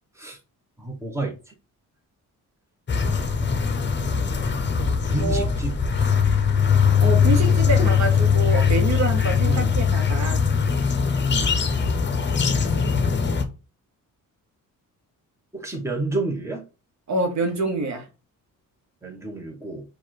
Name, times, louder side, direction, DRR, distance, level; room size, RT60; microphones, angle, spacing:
voice 1, 0.8-1.3 5.0-6.1 7.8-7.9 9.5-9.7 11.3-11.6 15.5-16.6 19.0-19.8, right 2 dB, 10° right, 1.2 m, -30 dB
sound 1, 2.9-13.4, left 6 dB, 30° left, 0.9 m, -21 dB
voice 2, 5.2-5.5 7.0-10.5 17.1-18.1, right 3 dB, 50° right, 1.1 m, -26 dB
4.7 x 2.5 x 4.5 m
cardioid pair, 115°, 34 cm